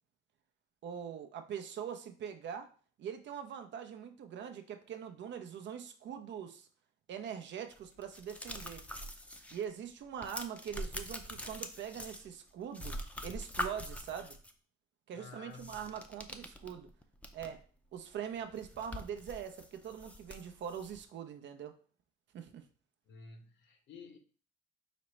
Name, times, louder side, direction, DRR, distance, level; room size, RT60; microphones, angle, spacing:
voice 1, 0.8-2.7 3.0-6.7 7.1-8.8 9.5-13.0 13.2-14.4 15.1-16.9 17.3-17.6 17.9-21.8 22.3-22.6, right 8 dB, 65° right, 0.6 m, -43 dB
sound 1, 7.7-9.6 9.9-12.5 12.7-14.5 15.5-17.6 18.0-18.1 18.4-21.0, left 1 dB, 5° left, 0.5 m, -44 dB
voice 2, 15.1-15.8 23.1-24.2, left 4 dB, 70° left, 0.8 m, -52 dB
5.0 x 2.0 x 4.3 m
cardioid pair, 90°, 20 cm